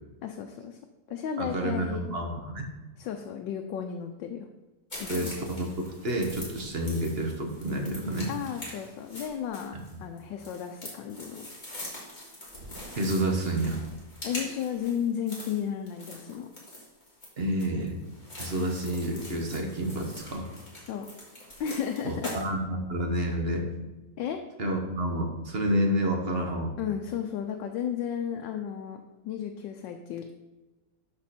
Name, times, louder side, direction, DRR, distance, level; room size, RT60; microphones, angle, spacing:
voice 1, 0.2-0.8 1.1-2.2 3.0-4.5 5.0-5.3 8.3-9.7 10.0-11.5 14.2-16.5 20.9-21.1 21.6-22.3 24.2-24.4 26.8-30.3, left 8 dB, 90° left, 4 dB, 1.3 m, -33 dB
voice 2, 1.4-2.7 5.1-8.3 9.7-9.8 12.9-13.8 17.4-18.0 18.4-20.5 22.0-23.7 24.6-26.7, right 1 dB, 35° right, 2 dB, 1.3 m, -29 dB
sound 1, 4.9-22.4, left 1 dB, 25° left, 2.4 m, -43 dB
12.0 x 4.3 x 4.2 m, 1.1 s
omnidirectional pair, 1.9 m